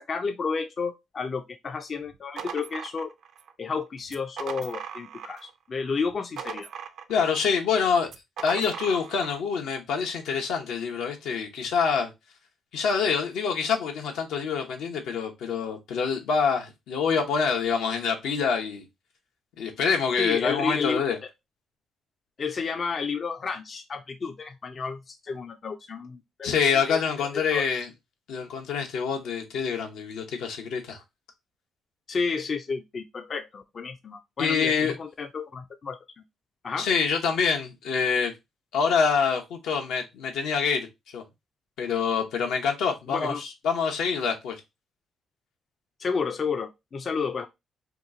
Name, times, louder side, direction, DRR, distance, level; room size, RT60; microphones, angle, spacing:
voice 1, 0.0-3.1 3.6-6.7 20.2-21.3 22.4-27.6 32.1-36.0 36.6-36.9 43.1-43.4 46.0-47.5, left 5 dB, 45° left, 0.4 m, -31 dB
sound 1, 2.0-3.5 4.0-5.5 5.8-7.4 8.0-9.4, right 8 dB, 75° right, 0.4 m, -39 dB
voice 2, 7.1-8.1 8.4-12.1 12.7-18.8 19.6-21.2 26.4-27.9 28.3-31.0 34.4-34.9 36.8-38.3 38.7-40.9 41.1-41.2 41.8-44.6, left 6 dB, 85° left, 0.8 m, -26 dB
2.9 x 2.4 x 3.7 m
cardioid pair, 90°, 0 cm